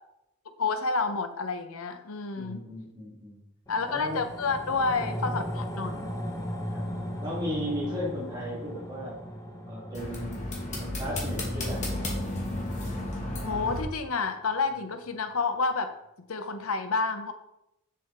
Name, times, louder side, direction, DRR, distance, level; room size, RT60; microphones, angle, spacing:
voice 1, 0.6-2.6 3.7-6.0 13.4-17.3, left 4 dB, 75° left, 9 dB, 0.7 m, -29 dB
voice 2, 2.3-3.4 3.9-4.2 5.9-6.1 6.7-6.9 7.2-9.2 9.6-10.4 10.8-12.2, equal, 20° right, -6 dB, 3.1 m, -36 dB
sound 1, 3.7-14.3 14.6-14.7, equal, 15° left, 0.9 m, -38 dB
sound 2, 9.9-13.8, left 1 dB, 35° left, 1.9 m, -32 dB
7.5 x 6.9 x 4.4 m, 0.85 s
head